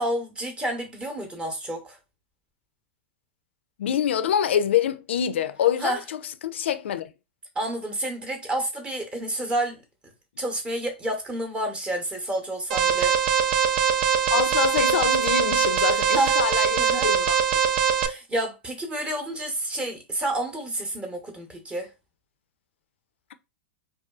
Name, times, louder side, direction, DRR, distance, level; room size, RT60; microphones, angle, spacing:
voice 1, 0.0-2.0 5.8-6.0 7.6-9.8 10.4-13.1 16.1-16.3 16.8-17.1 18.0-21.9, right 1 dB, 15° right, 0.8 m, -29 dB
voice 2, 3.8-7.1 14.3-17.4, left 9 dB, 75° left, 0.3 m, -25 dB
Alarm, 12.7-18.1, right 7 dB, 55° right, 0.4 m, -22 dB
2.5 x 2.3 x 2.3 m
hypercardioid pair, 110°, 6 cm